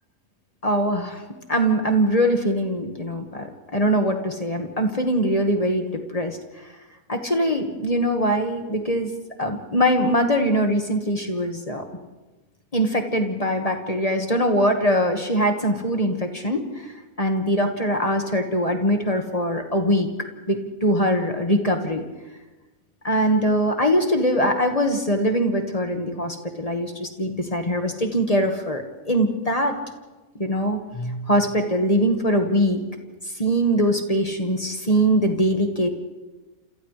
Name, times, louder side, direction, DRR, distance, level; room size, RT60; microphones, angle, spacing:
voice 1, 0.6-1.2 1.5-6.4 7.1-9.1 9.4-11.9 12.7-16.6 17.2-20.1 20.5-22.0 23.0-29.8 30.4-32.8 33.4-35.9, equal, 25° left, 4 dB, 1.7 m, -22 dB
28.0 x 28.0 x 3.3 m, 1.2 s
omnidirectional pair, 1.5 m